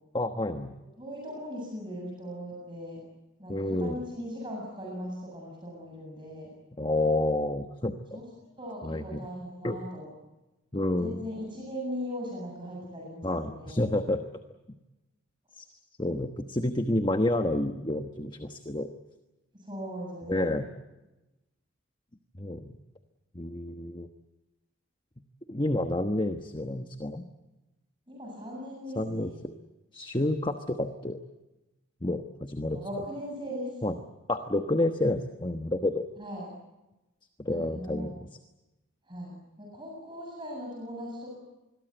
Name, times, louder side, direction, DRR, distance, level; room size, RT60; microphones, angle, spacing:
voice 1, 0.1-0.8 3.5-4.0 6.8-8.2 8.8-9.2 9.6-9.8 10.7-11.2 13.2-14.2 15.5-15.7 16.0-18.9 20.3-20.7 22.4-22.8 23.3-24.1 25.5-27.2 29.0-29.5 29.9-31.2 32.0-32.8 33.8-33.9 34.3-36.0 37.4-38.1, left 1 dB, 25° left, 7 dB, 1.1 m, -29 dB
voice 2, 1.0-3.0 3.4-6.5 8.1-8.3 8.6-10.1 11.0-13.9 19.5-20.6 28.1-29.4 32.7-33.7 36.2-36.5 37.5-38.1 39.1-41.4, equal, 25° right, -1 dB, 7.8 m, -39 dB
27.0 x 22.0 x 8.0 m, 1.0 s
head